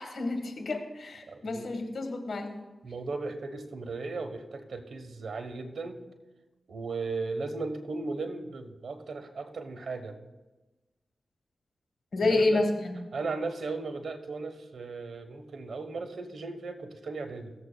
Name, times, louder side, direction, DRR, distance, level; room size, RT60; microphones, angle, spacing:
voice 1, 0.0-2.6 12.1-12.9, left 2 dB, 70° left, 4 dB, 1.5 m, -29 dB
voice 2, 1.3-1.7 2.8-6.0 6.7-10.2 12.2-12.6 13.1-17.5, right 3 dB, 75° right, 7 dB, 1.0 m, -36 dB
17.0 x 7.5 x 2.2 m, 1.1 s
cardioid pair, 40°, 0 cm